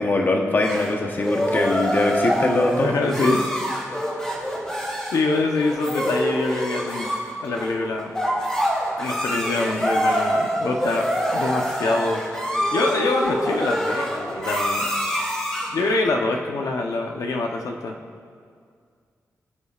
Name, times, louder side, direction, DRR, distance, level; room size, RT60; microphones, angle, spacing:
voice 1, 0.0-3.3, left 2 dB, 35° left, 2 dB, 1.1 m, -22 dB
sound 1, 0.6-15.8, equal, 15° left, 2.2 m, -25 dB
voice 2, 2.8-3.5 5.1-7.1 7.4-8.1 9.0-11.1 11.3-14.9 15.7-17.9, left 3 dB, 80° left, 2 dB, 0.9 m, -25 dB
24.5 x 8.5 x 2.5 m, 2.1 s
wide cardioid pair, 170°, 6 cm